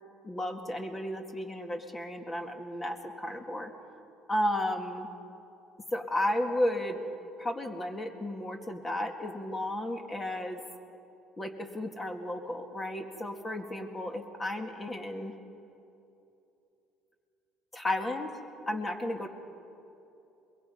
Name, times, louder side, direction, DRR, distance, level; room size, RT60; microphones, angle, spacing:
voice 1, 0.2-3.7 4.3-5.1 5.9-7.0 7.4-10.6 11.4-15.3 17.7-18.3 18.7-19.3, left 1 dB, 25° left, 5 dB, 2.1 m, -33 dB
22.5 x 22.0 x 5.6 m, 2.8 s
supercardioid pair, 90°, 0 cm